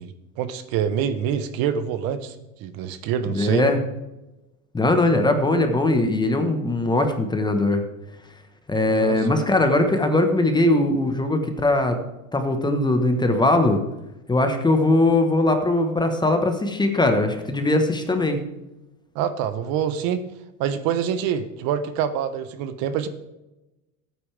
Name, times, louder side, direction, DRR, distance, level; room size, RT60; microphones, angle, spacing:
voice 1, 0.0-2.3 2.6-3.7 8.9-9.2 19.1-20.3 20.6-23.1, right 8 dB, 50° right, 11 dB, 1.1 m, -26 dB
voice 2, 3.3-3.8 4.7-7.8 8.7-12.0 12.3-13.8 14.3-18.4, left 2 dB, 10° left, 6 dB, 1.3 m, -20 dB
13.5 x 9.2 x 3.5 m, 0.98 s
supercardioid pair, 130°, 44 cm